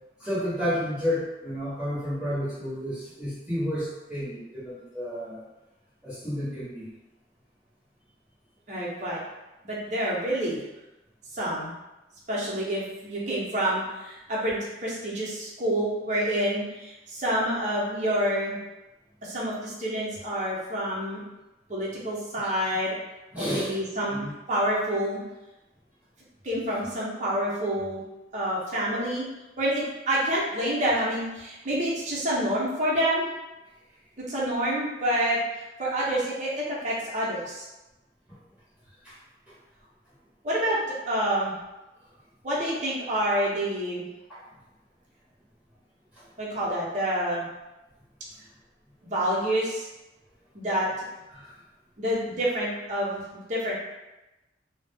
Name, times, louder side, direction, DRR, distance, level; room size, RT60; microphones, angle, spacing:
voice 1, 0.2-5.4 6.0-6.9 23.3-23.7 24.2-24.3 38.3-38.4 39.0-39.1 39.5-39.6 44.3-44.4 51.3-51.5, equal, 5° right, -11 dB, 0.8 m, -31 dB
voice 2, 8.7-9.2 9.6-10.6 11.3-11.7 12.3-18.6 19.2-21.2 21.7-23.0 23.4-24.2 24.5-25.2 26.4-28.0 28.3-29.3 29.6-33.3 34.3-37.6 40.4-40.8 41.1-41.6 42.4-44.1 46.4-47.4 49.0-49.9 50.5-50.9 52.0-53.7, equal, 45° right, -6 dB, 0.7 m, -28 dB
2.3 x 2.0 x 3.4 m, 1.0 s
head